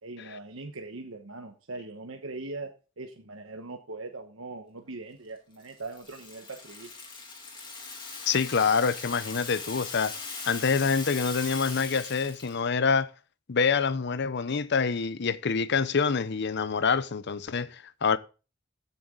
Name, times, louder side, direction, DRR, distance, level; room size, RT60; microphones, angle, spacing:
voice 1, 0.0-2.7 3.0-6.9, right 3 dB, 90° right, 1.2 m, -40 dB
Rattle (instrument), 5.6-12.6, left 4 dB, 25° left, 2.6 m, -40 dB
voice 2, 8.3-10.1 10.5-13.1 13.5-18.2, left 5 dB, 60° left, 0.7 m, -26 dB
15.5 x 6.9 x 3.8 m
head